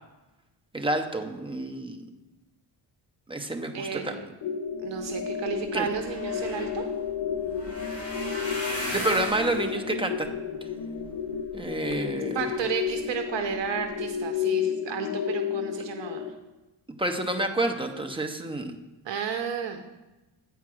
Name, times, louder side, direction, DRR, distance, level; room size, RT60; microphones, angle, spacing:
voice 1, 0.7-2.1 3.3-4.1 5.7-5.9 8.9-10.3 11.5-12.4 17.0-18.8, right 2 dB, 10° right, 4 dB, 0.4 m, -29 dB
voice 2, 3.7-4.2 4.8-6.9 12.3-16.2 19.0-19.8, right 7 dB, 60° right, 6 dB, 0.7 m, -32 dB
sound 1, 4.4-16.3, left 8 dB, 75° left, 0.8 m, -32 dB
sound 2, 5.2-5.3 5.6-11.9 12.5-12.9 13.4-13.6 13.8-13.9, equal, 30° left, 2.5 m, -37 dB
8.7 x 4.6 x 6.1 m, 1.1 s
wide cardioid pair, 160°, 50 cm